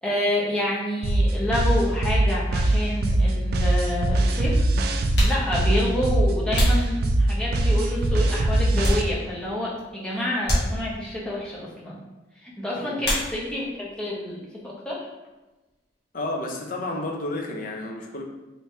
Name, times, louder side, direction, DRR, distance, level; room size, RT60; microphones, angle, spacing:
voice 1, 0.0-4.7 5.2-12.0 12.4-15.1, left 1 dB, 5° left, -6 dB, 0.8 m, -28 dB
sound 1, 1.0-9.0, right 1 dB, 60° right, 0.3 m, -21 dB
sound 2, 3.2-3.3 4.3-4.4 5.0-7.6 8.2-9.5 9.8-10.0 10.4-11.2 13.0-13.8 14.1-14.7 15.0-17.2, equal, 65° left, 1.2 m, -29 dB
voice 2, 16.1-18.2, left 2 dB, 50° left, 1 dB, 0.6 m, -31 dB
3.2 x 3.2 x 2.8 m, 1.1 s
head